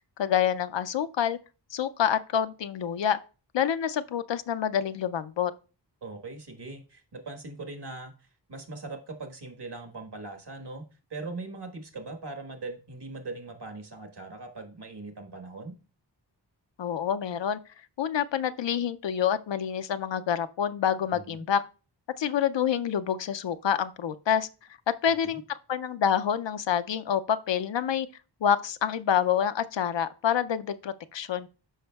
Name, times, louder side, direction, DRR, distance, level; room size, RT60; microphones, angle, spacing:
voice 1, 0.2-1.4 1.7-3.2 3.5-5.5 16.8-17.6 18.0-21.6 22.2-24.5 24.9-28.1 28.4-31.5, left 9 dB, 75° left, 0.5 m, -27 dB
voice 2, 6.0-15.7 21.1-21.4 25.0-25.4, right 3 dB, 65° right, 1.4 m, -41 dB
12.0 x 5.2 x 2.3 m
wide cardioid pair, 70°, 44 cm